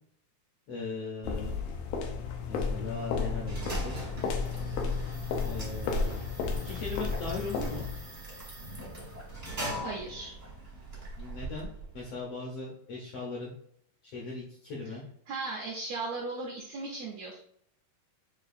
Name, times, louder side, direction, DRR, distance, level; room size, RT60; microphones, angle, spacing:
voice 1, 0.7-1.5 2.5-4.1 5.4-6.2 6.6-7.8 11.2-11.7 11.9-13.5 14.0-15.0, left 3 dB, 75° left, -3 dB, 1.5 m, -39 dB
sound 1, 1.2-8.1, left 4 dB, 90° left, 1.5 m, -33 dB
sound 2, 2.8-12.1, right 1 dB, 40° right, 0.6 m, -41 dB
voice 2, 9.8-10.3 15.3-17.4, right 3 dB, 75° right, -2 dB, 1.5 m, -37 dB
6.6 x 2.4 x 2.5 m, 0.69 s
omnidirectional pair, 3.7 m